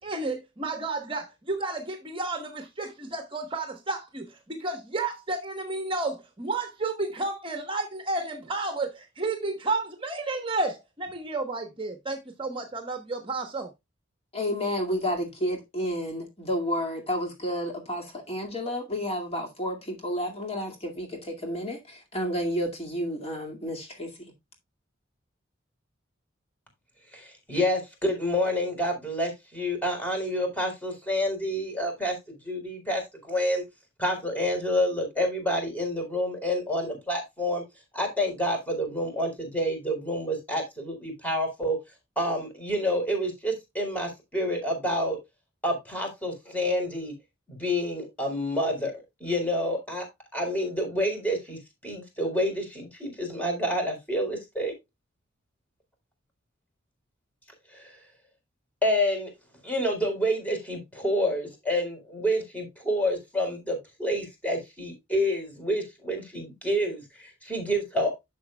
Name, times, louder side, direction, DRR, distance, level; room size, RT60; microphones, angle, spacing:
voice 1, 0.0-13.7, right 3 dB, 25° right, 1.1 m, -31 dB
voice 2, 14.3-24.3, equal, 30° left, 2.1 m, -31 dB
voice 3, 27.1-32.2 32.4-33.6 34.0-37.6 37.9-41.8 42.2-45.2 45.6-47.1 47.5-48.9 49.2-50.1 50.3-54.7 57.7-58.0 58.8-59.3 59.6-68.2, equal, 10° left, 4.1 m, -28 dB
11.5 x 6.9 x 2.3 m
head